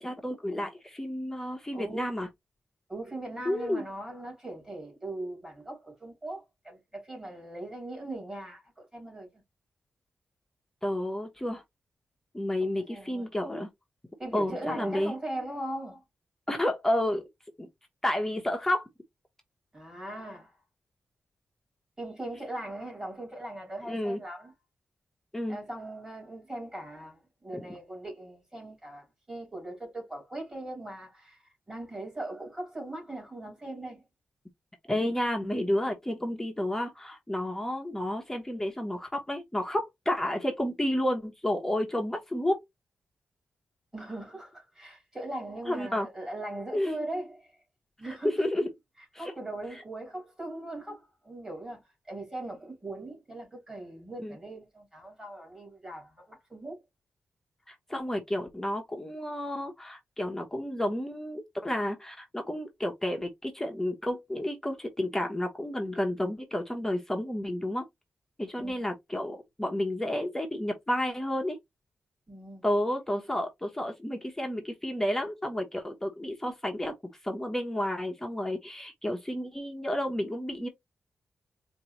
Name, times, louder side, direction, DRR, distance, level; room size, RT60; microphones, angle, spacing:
voice 1, 0.0-2.3 3.4-3.9 10.8-11.6 12.3-13.7 14.3-15.1 16.5-17.3 17.6-17.7 18.0-18.9 23.9-24.2 25.3-25.6 34.9-42.6 45.7-46.1 46.7-47.0 48.0-48.7 49.1-49.3 54.2-54.4 57.7-67.8 68.4-71.6 72.6-76.9 77.2-80.7, left 1 dB, 10° left, 0.9 m, -31 dB
voice 2, 1.7-2.1 2.9-9.4 12.9-13.3 14.2-16.0 19.7-20.6 22.0-24.5 25.5-34.1 43.9-47.5 48.0-48.4 49.2-56.8 68.6-68.9 72.3-72.6, right 1 dB, 15° right, 2.9 m, -40 dB
4.5 x 2.6 x 2.9 m
wide cardioid pair, 125°, 4 cm